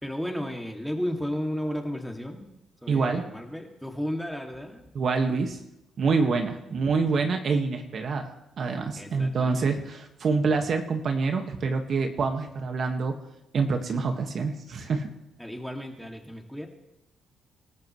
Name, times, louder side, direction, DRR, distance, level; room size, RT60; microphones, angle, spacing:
voice 1, 0.0-2.5 2.8-4.9 6.2-6.4 7.1-7.3 9.0-9.7 15.4-16.7, equal, ahead, 2 dB, 2.4 m, -34 dB
voice 2, 2.9-3.3 4.9-5.6 6.0-13.2 13.5-15.1, right 4 dB, 55° right, 4 dB, 1.7 m, -26 dB
26.5 x 13.5 x 3.2 m, 0.90 s
cardioid pair, 90°, 0 cm